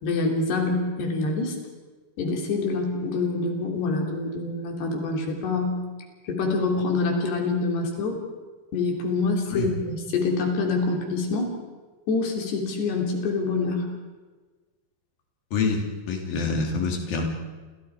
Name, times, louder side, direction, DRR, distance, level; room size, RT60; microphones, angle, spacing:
voice 1, 0.0-1.6 2.2-5.8 6.3-8.2 8.7-11.5 12.1-13.9, left 3 dB, 75° left, 2 dB, 5.4 m, -26 dB
voice 2, 15.5-17.3, left 4 dB, 60° left, 1 dB, 4.8 m, -26 dB
28.5 x 28.0 x 5.0 m, 1.3 s
omnidirectional pair, 4.8 m